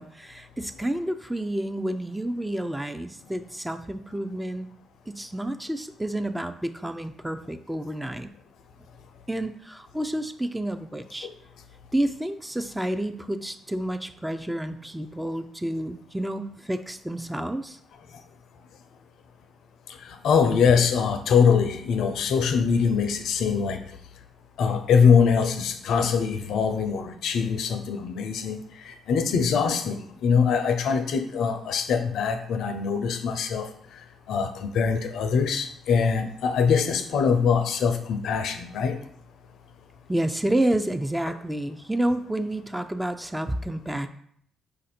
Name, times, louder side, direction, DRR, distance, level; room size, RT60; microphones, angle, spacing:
voice 1, 0.0-4.7 5.1-8.3 9.3-11.3 11.9-17.8 40.1-44.1, right 1 dB, 10° right, 9 dB, 0.4 m, -29 dB
voice 2, 20.1-23.8 24.6-28.6 28.9-33.7 34.3-39.0, left 6 dB, 75° left, 8 dB, 0.5 m, -23 dB
5.0 x 2.6 x 4.2 m, 0.65 s
supercardioid pair, 55°, 0 cm